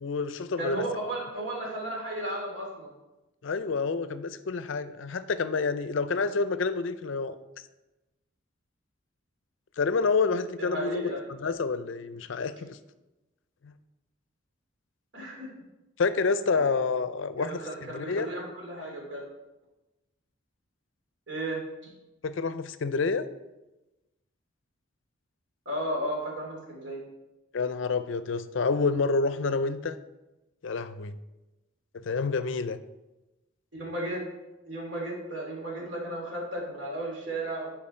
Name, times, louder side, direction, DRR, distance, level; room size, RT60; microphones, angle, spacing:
voice 1, 0.0-0.8 3.4-7.4 9.8-11.1 11.4-12.8 13.6-13.7 16.0-18.3 22.2-23.3 27.5-30.0 30.6-31.1 31.9-32.8, left 4 dB, 70° left, 12 dB, 0.5 m, -28 dB
voice 2, 0.6-2.9 10.6-11.3 15.1-15.5 17.4-19.2 21.3-21.9 25.6-27.0 33.7-34.2 34.7-37.7, right 1 dB, 60° right, -2 dB, 3.0 m, -34 dB
11.0 x 4.7 x 4.4 m, 1.0 s
head